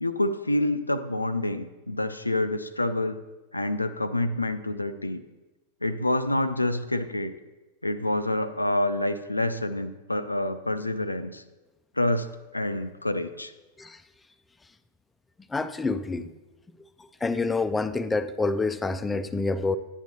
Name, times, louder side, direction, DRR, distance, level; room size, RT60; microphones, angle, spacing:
voice 1, 0.0-3.2 3.5-5.2 5.8-7.3 7.8-11.4 11.9-13.5, left 1 dB, 85° left, 10 dB, 0.4 m, -27 dB
voice 2, 15.5-16.3 17.2-19.8, left 3 dB, 10° left, 11 dB, 0.4 m, -27 dB
11.0 x 9.2 x 2.7 m, 1.1 s
figure-of-eight pair, 90°, 0 cm